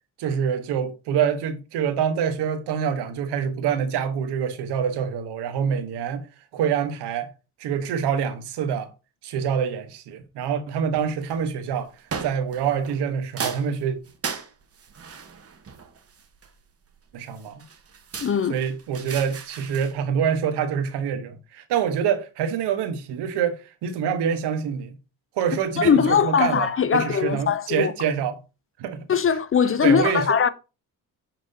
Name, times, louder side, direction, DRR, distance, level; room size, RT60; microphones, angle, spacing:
voice 1, 0.2-6.2 6.5-7.3 7.6-8.9 9.2-11.9 12.2-14.0 17.1-17.6 18.5-24.9 25.4-28.4 28.8-29.0 29.8-30.5, right 7 dB, 90° right, 1.1 m, -26 dB
sound 1, 10.9-11.4 12.1-13.0 13.4-16.7 17.4-19.9, right 6 dB, 35° right, 1.2 m, -36 dB
voice 2, 18.2-18.6 25.8-27.9 29.1-30.5, left 7 dB, 35° left, 0.5 m, -20 dB
6.6 x 5.9 x 2.7 m
cardioid pair, 80°, 40 cm